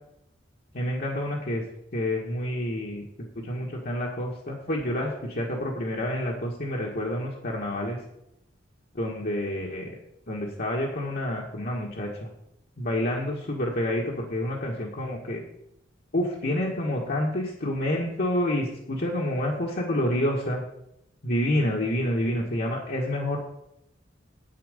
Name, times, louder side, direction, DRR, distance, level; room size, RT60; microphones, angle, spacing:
voice 1, 0.7-1.6 1.9-3.0 3.3-8.0 8.9-9.9 10.3-12.3 12.8-15.4 16.1-20.6 21.2-23.4, left 1 dB, 55° left, -2 dB, 1.6 m, -28 dB
10.0 x 8.7 x 5.1 m, 0.82 s
head